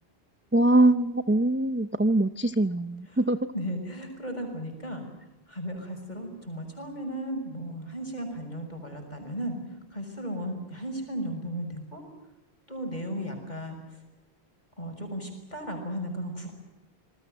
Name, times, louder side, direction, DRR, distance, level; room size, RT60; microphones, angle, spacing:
voice 1, 0.5-3.4, right 2 dB, 15° right, 10 dB, 0.6 m, -23 dB
voice 2, 3.5-5.0 5.5-9.5 9.9-12.0 12.7-13.8 14.8-16.5, equal, 40° left, 4 dB, 6.6 m, -35 dB
27.5 x 20.5 x 7.8 m, 1.0 s
omnidirectional pair, 1.1 m